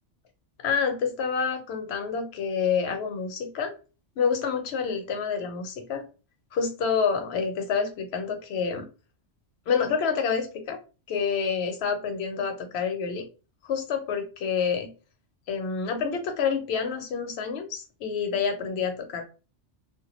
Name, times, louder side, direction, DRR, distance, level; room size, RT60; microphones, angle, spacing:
voice 1, 0.6-3.7 4.2-6.0 6.5-8.9 9.7-10.8 11.1-13.3 13.6-14.9 15.5-19.2, left 6 dB, 70° left, 6 dB, 0.8 m, -28 dB
2.1 x 2.0 x 2.9 m, 0.33 s
omnidirectional pair, 1.2 m